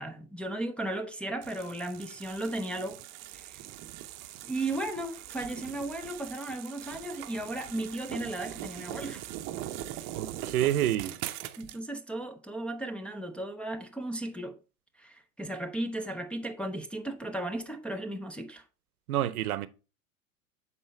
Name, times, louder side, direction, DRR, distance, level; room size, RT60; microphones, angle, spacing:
voice 1, 0.0-3.0 3.3-3.6 4.4-9.2 11.6-14.6 15.0-18.6, right 1 dB, 5° left, 0.4 m, -35 dB
sound 1, 1.4-11.8, right 13 dB, 40° right, 0.7 m, -41 dB
voice 2, 10.1-11.2 19.1-19.7, right 12 dB, 80° right, 0.7 m, -28 dB
7.5 x 4.2 x 4.4 m
hypercardioid pair, 115°, 43 cm